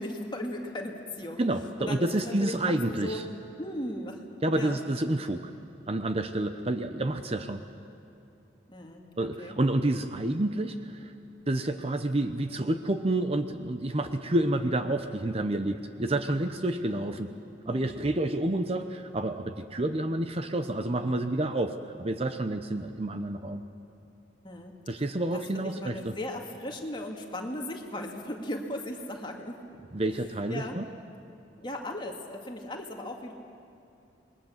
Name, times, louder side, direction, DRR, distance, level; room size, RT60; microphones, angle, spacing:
voice 1, 0.0-1.4 1.8-3.2 3.6-4.2 4.5-4.8 8.7-9.6 16.9-17.2 17.7-18.0 24.4-24.7 25.3-29.6 30.5-30.8 31.6-33.3, left 1 dB, 25° left, 1 dB, 2.2 m, -37 dB
voice 2, 1.4-3.2 4.4-5.5 5.9-7.6 9.2-11.1 11.5-17.3 17.7-23.6 24.9-26.1 29.9-30.9, right 1 dB, 30° right, 8 dB, 0.8 m, -29 dB
27.5 x 21.5 x 7.3 m, 2.7 s
head